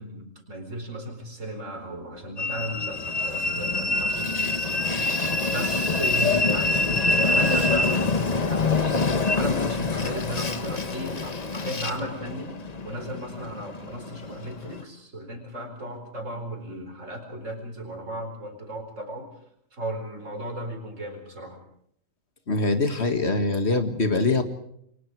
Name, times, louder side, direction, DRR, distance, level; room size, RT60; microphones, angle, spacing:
voice 1, 0.0-12.6 12.8-19.3 19.7-21.6, equal, 70° right, 5 dB, 4.9 m, -35 dB
Train, 2.4-14.8, left 3 dB, 30° left, 1.2 m, -26 dB
voice 2, 22.5-24.4, left 3 dB, 55° left, 8 dB, 2.1 m, -23 dB
29.0 x 23.0 x 4.8 m, 0.70 s
omnidirectional pair, 1.4 m